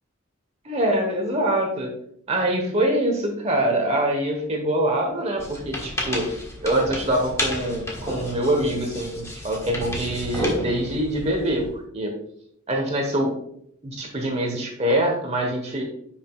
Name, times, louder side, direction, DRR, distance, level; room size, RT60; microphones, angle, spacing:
voice 1, 0.6-1.9 2.3-6.3 6.6-11.7 11.9-12.1 12.7-13.3 13.8-15.8, right 1 dB, 30° right, 2 dB, 1.2 m, -24 dB
sound 1, 5.4-11.7, left 1 dB, 15° left, 1.5 m, -31 dB
10.0 x 6.0 x 2.4 m, 0.70 s
head